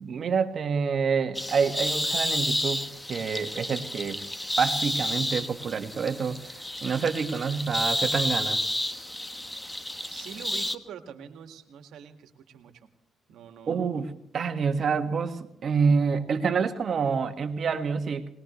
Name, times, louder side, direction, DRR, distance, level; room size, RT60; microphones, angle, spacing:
voice 1, 0.0-4.2 4.6-6.4 6.8-8.6 13.7-14.1 14.3-18.3, right 5 dB, 50° right, 6 dB, 1.7 m, -27 dB
sound 1, 1.3-10.8, left 1 dB, 10° left, 1.2 m, -31 dB
voice 2, 10.1-12.8 13.3-13.9, right 8 dB, 80° right, 6 dB, 2.0 m, -45 dB
22.5 x 20.0 x 3.2 m, 0.78 s
cardioid pair, 90°, 0 cm